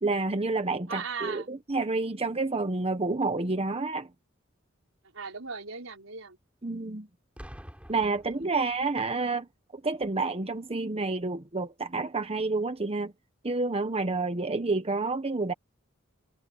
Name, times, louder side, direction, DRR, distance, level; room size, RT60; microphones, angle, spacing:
voice 1, 0.0-4.1 6.6-7.1 7.9-9.5 9.7-13.1 13.4-15.5, right 3 dB, 30° right, 1.0 m, -29 dB
voice 2, 0.9-1.5 5.1-6.4 8.3-8.7, right 5 dB, 85° right, 4.6 m, -38 dB
Boom, 7.4-9.1 10.0-10.2, equal, 5° right, 6.3 m, -48 dB
head